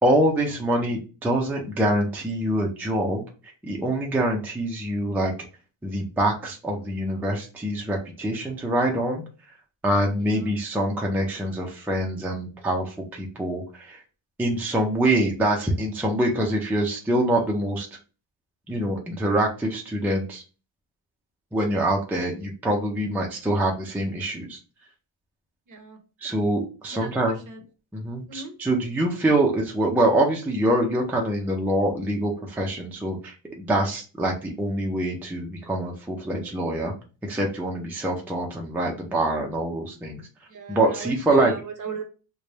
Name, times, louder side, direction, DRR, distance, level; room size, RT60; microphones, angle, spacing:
voice 1, 0.0-3.2 3.6-5.3 5.8-9.2 9.8-14.0 14.4-17.9 18.7-20.4 21.5-24.6 26.2-27.4 27.9-36.9 37.2-40.2 40.7-41.5, right 1 dB, 5° right, 0 dB, 0.4 m, -25 dB
voice 2, 10.1-10.5 25.7-26.0 26.9-27.6 28.3-28.5 40.5-42.0, right 5 dB, 40° right, 5 dB, 0.7 m, -38 dB
3.3 x 2.2 x 3.9 m, 0.34 s
wide cardioid pair, 165°, 49 cm